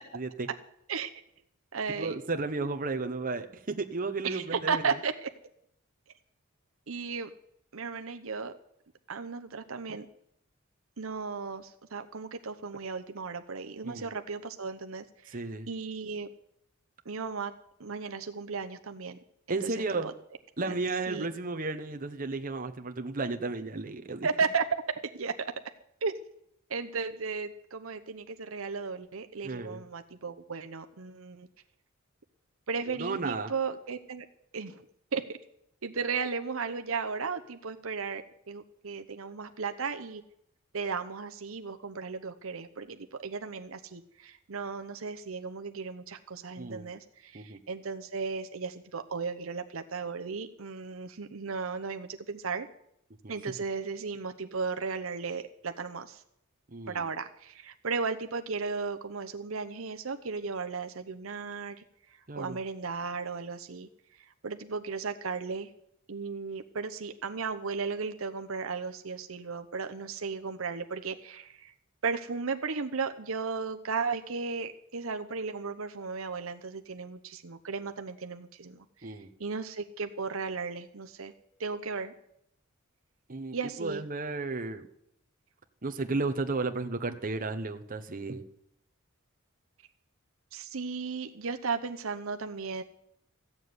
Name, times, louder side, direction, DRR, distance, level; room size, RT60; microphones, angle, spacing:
voice 1, 0.1-0.5 1.9-5.0 13.8-14.1 15.3-15.7 19.5-20.1 20.6-24.3 29.4-29.8 32.9-33.5 46.6-46.9 47.3-47.6 53.2-53.3 56.7-57.0 62.3-62.6 79.0-79.3 83.3-84.9 85.8-88.5, right 3 dB, 40° right, 6 dB, 1.0 m, -33 dB
voice 2, 1.7-2.2 4.2-5.3 6.9-7.3 7.7-8.5 9.1-10.1 11.0-15.4 15.7-16.3 17.0-17.5 17.8-19.2 19.5-20.1 20.7-20.8 21.1-21.3 24.2-24.6 25.1-25.5 26.0-26.1 26.7-31.5 32.7-34.2 34.5-34.8 35.1-35.4 35.8-40.2 40.7-52.7 53.3-56.2 56.9-61.8 62.4-63.9 64.4-65.7 66.1-71.7 72.0-81.3 81.6-82.1 83.5-84.0 90.5-92.8, right 5 dB, 70° right, 7 dB, 0.9 m, -35 dB
15.0 x 7.3 x 9.6 m, 0.75 s
head